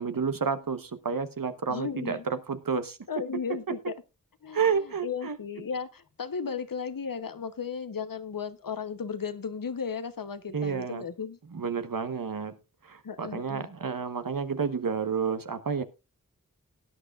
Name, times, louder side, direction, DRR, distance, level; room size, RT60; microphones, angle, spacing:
voice 1, 0.0-3.0 3.5-3.8 4.5-5.4 10.5-11.0 11.5-12.6 12.8-15.8, right 6 dB, 85° right, 1.1 m, -30 dB
voice 2, 1.7-2.3 3.1-3.9 4.4-11.4 13.0-13.7, left 6 dB, 80° left, 1.0 m, -35 dB
19.0 x 9.0 x 2.4 m
wide cardioid pair, 45°, 33 cm